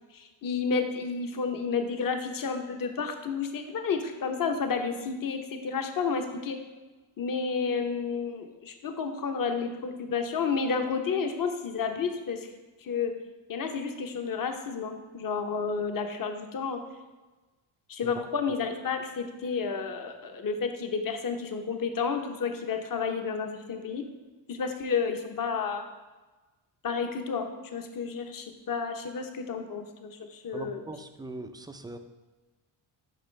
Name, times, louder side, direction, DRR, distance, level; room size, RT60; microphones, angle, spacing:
voice 1, 0.1-6.6 7.2-12.5 12.8-13.1 13.5-16.8 17.9-24.0 24.5-25.8 26.8-30.8, left 5 dB, 40° left, 5 dB, 0.8 m, -31 dB
voice 2, 30.5-32.0, right 2 dB, 10° right, 8 dB, 0.4 m, -41 dB
6.7 x 5.0 x 3.2 m, 1.2 s
supercardioid pair, 60°, 50 cm